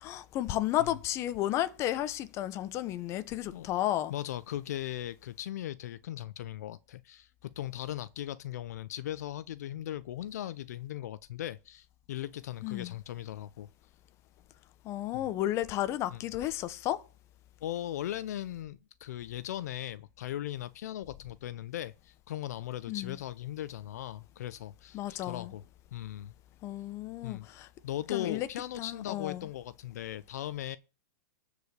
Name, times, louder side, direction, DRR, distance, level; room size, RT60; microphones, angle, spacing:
voice 1, 0.0-4.1 12.6-12.9 14.8-17.0 22.9-23.1 24.9-25.5 26.6-27.7 28.1-28.5 28.8-29.5, left 13 dB, 30° left, 0.9 m, -33 dB
voice 2, 4.1-13.7 15.1-15.3 16.1-16.2 17.6-25.6 25.9-26.3 27.2-30.8, left 12 dB, 70° left, 0.6 m, -38 dB
13.0 x 5.0 x 6.9 m
hypercardioid pair, 145°, 9 cm